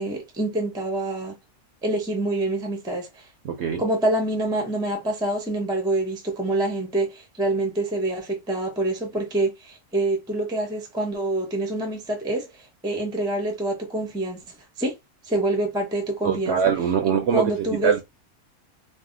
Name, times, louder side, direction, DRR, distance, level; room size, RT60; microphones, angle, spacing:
voice 1, 0.0-1.4 1.8-3.2 3.8-12.5 12.8-14.4 14.8-14.9 15.2-16.6 17.3-17.9, right 1 dB, 5° right, 0.3 m, -26 dB
voice 2, 3.4-3.8 16.2-17.4 17.7-18.0, right 7 dB, 65° right, 0.7 m, -22 dB
2.6 x 2.0 x 3.8 m
omnidirectional pair, 1.5 m